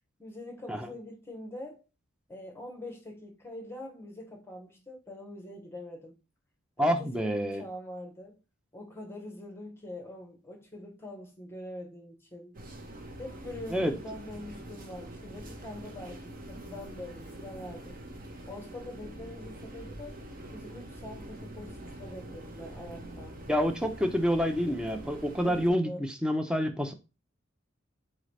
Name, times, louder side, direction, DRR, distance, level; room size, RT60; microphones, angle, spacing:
voice 1, 0.2-1.8 2.3-6.2 6.8-8.4 8.7-12.6 13.2-18.0 18.5-20.2 20.5-23.4 25.4-26.0, left 1 dB, 10° left, 1.0 m, -44 dB
voice 2, 6.8-7.6 13.7-13.9 23.5-26.9, equal, 5° right, 0.4 m, -28 dB
sound 1, 12.5-25.7, right 1 dB, 45° right, 0.8 m, -44 dB
4.1 x 3.8 x 3.2 m
head